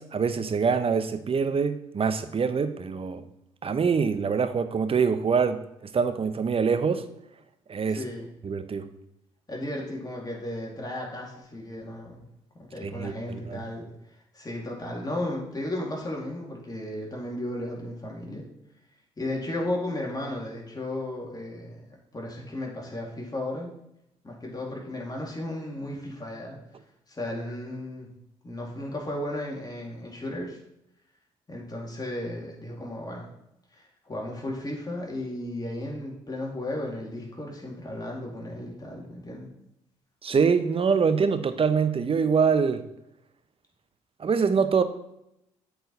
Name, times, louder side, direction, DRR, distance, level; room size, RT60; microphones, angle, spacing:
voice 1, 0.0-3.3 3.6-5.6 5.9-7.1 7.7-8.0 8.4-8.9 12.8-13.6 40.2-42.9 44.2-44.8, right 5 dB, 40° right, 11 dB, 0.7 m, -24 dB
voice 2, 7.9-8.3 9.5-12.2 12.6-13.9 14.3-18.4 19.2-21.8 22.1-23.7 24.2-26.6 27.1-28.1 28.4-30.6 31.5-33.3 33.7-39.5, left 1 dB, 25° left, -2 dB, 2.6 m, -34 dB
7.7 x 4.7 x 4.1 m, 0.81 s
hypercardioid pair, 50°, 15 cm